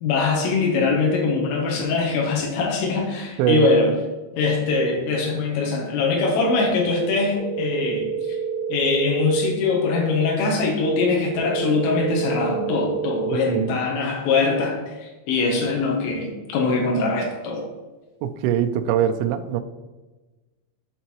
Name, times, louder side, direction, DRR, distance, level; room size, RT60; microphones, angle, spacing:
voice 1, 0.0-3.9 4.3-8.4 8.7-14.8 15.0-17.7, left 3 dB, 80° left, 0 dB, 3.4 m, -22 dB
sound 1, 7.4-9.4 11.4-13.4, right 6 dB, 55° right, 1.6 m, -28 dB
voice 2, 13.3-13.8 18.2-19.6, right 10 dB, 85° right, 7 dB, 3.0 m, -22 dB
11.0 x 3.8 x 3.0 m, 1.2 s
omnidirectional pair, 5.9 m